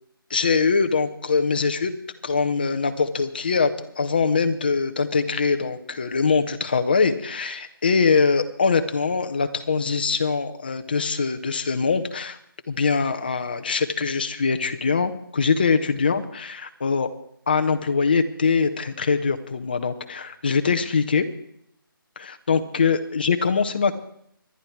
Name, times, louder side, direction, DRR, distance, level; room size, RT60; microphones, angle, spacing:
voice 1, 0.3-1.9 2.2-12.4 12.7-17.1 17.5-21.2 22.2-23.9, left 5 dB, 25° left, 9 dB, 0.7 m, -23 dB
25.0 x 11.0 x 4.6 m, 0.70 s
figure-of-eight pair, 175°, 12 cm